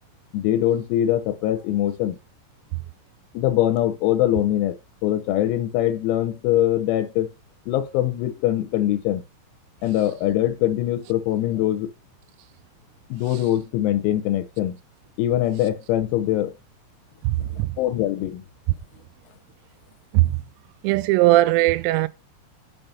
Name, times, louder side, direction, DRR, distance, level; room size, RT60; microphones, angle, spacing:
voice 1, 0.3-2.2 3.4-7.3 7.7-9.2 9.8-11.9 13.1-14.8 15.2-16.5 17.4-18.4, left 12 dB, 85° left, 3.8 m, -23 dB
voice 2, 17.2-17.7 20.1-20.4 20.8-22.1, right 18 dB, 85° right, 3.4 m, -19 dB
7.7 x 5.5 x 5.5 m
omnidirectional pair, 6.0 m